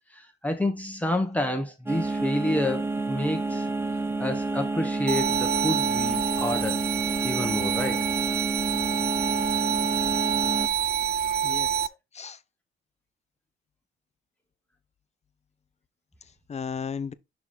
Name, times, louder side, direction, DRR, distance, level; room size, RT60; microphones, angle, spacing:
voice 1, 0.1-3.7 4.2-6.8 7.2-8.0, left 1 dB, 5° left, 1.4 m, -29 dB
sound 1, 1.9-10.7, right 3 dB, 10° right, 0.9 m, -29 dB
sound 2, 5.1-11.9, right 9 dB, 55° right, 0.5 m, -27 dB
voice 2, 11.4-12.4 16.2-17.1, left 6 dB, 35° left, 0.7 m, -36 dB
6.1 x 4.7 x 3.7 m
cardioid pair, 90°, 20 cm